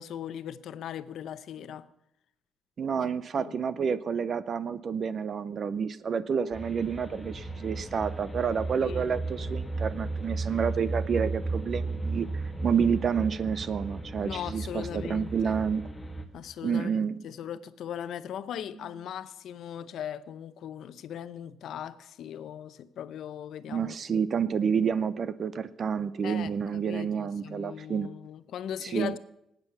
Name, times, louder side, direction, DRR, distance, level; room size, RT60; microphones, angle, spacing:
voice 1, 0.0-1.9 3.0-3.1 3.4-3.6 8.7-9.2 14.2-15.6 16.3-23.9 26.2-29.2, left 9 dB, 70° left, 0.7 m, -39 dB
voice 2, 2.8-15.8 16.6-17.2 23.7-28.1 28.8-29.2, right 6 dB, 40° right, 0.5 m, -29 dB
sound 1, 6.5-16.3, right 3 dB, 10° left, 1.5 m, -35 dB
18.5 x 9.1 x 6.8 m
cardioid pair, 140°, 0 cm